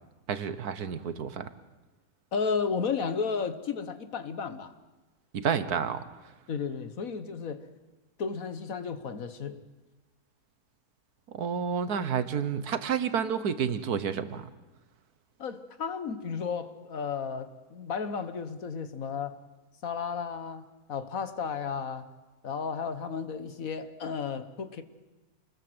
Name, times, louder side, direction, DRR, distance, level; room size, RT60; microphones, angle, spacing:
voice 1, 0.3-1.5 5.3-6.0 11.3-14.5, right 7 dB, 75° right, 1.7 m, -30 dB
voice 2, 2.3-4.7 6.5-7.7 8.2-9.7 15.4-19.4 19.8-22.1 22.4-24.8, left 5 dB, 65° left, 1.7 m, -33 dB
28.0 x 20.5 x 7.9 m
omnidirectional pair, 1.6 m